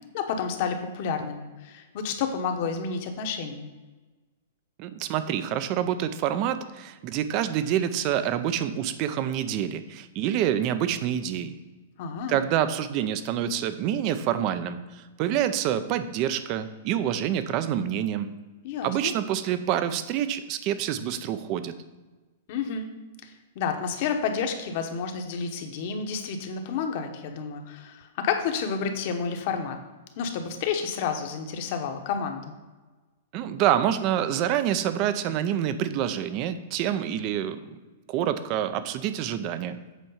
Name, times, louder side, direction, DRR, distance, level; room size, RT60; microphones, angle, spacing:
voice 1, 0.1-3.7 12.0-12.4 18.6-19.1 22.5-22.9 23.2-29.8 30.2-32.5, left 6 dB, 45° left, 5 dB, 1.0 m, -30 dB
voice 2, 4.8-11.5 12.3-18.3 18.8-21.7 33.3-37.8 38.1-39.8, right 10 dB, 30° right, 11 dB, 0.5 m, -27 dB
8.2 x 4.6 x 5.6 m, 1.2 s
hypercardioid pair, 165°, 0 cm